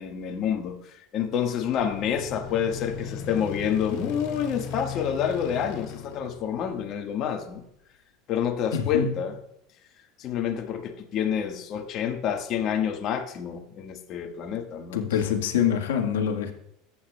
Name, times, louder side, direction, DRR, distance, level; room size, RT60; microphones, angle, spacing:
voice 1, 0.0-7.6 8.3-9.3 10.2-15.1, left 8 dB, 50° left, 4 dB, 1.4 m, -28 dB
sound 1, 1.8-7.2, left 7 dB, 70° left, 2.4 m, -38 dB
voice 2, 8.7-9.1 14.9-16.5, left 8 dB, 90° left, 4 dB, 1.4 m, -25 dB
14.0 x 8.8 x 2.2 m, 0.77 s
supercardioid pair, 105°, 0 cm